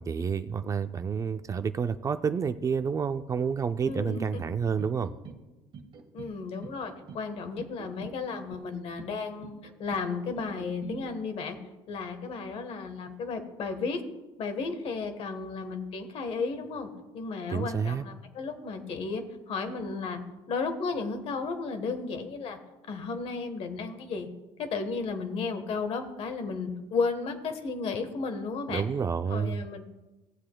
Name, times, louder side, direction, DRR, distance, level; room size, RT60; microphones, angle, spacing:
voice 1, 0.0-5.1 17.5-18.1 28.7-29.6, right 6 dB, 30° right, 10 dB, 0.4 m, -29 dB
voice 2, 3.8-4.4 6.1-11.6 11.9-14.0 14.4-20.2 20.5-22.6 22.8-24.3 24.6-28.8 29.3-29.8, left 4 dB, 55° left, 7 dB, 1.3 m, -34 dB
sound 1, 3.8-4.5 4.8-5.4 5.7-6.3 6.6-7.2 7.6-8.2 8.5-9.1 9.4-10.0 10.4-11.0, right 6 dB, 45° right, 1.3 m, -45 dB
18.0 x 7.5 x 2.3 m, 1.1 s
cardioid pair, 115°, 12 cm